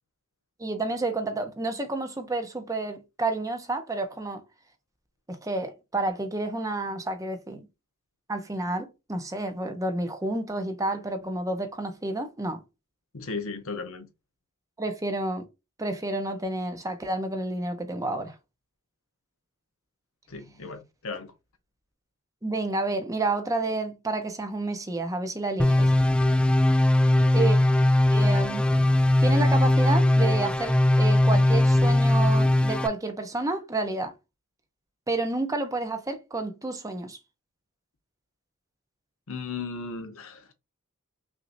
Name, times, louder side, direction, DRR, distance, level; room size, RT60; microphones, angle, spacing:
voice 1, 0.6-4.4 5.3-7.7 8.3-12.6 14.8-15.4 15.8-18.3 22.4-25.9 27.3-27.6 28.1-28.7 29.2-34.1 35.1-37.2, right 2 dB, 15° right, 0.8 m, -30 dB
voice 2, 13.1-14.1 20.3-21.3 39.3-40.5, left 4 dB, 65° left, 0.9 m, -36 dB
sound 1, 25.6-32.9, left 1 dB, 5° left, 0.3 m, -20 dB
5.9 x 2.8 x 2.6 m
head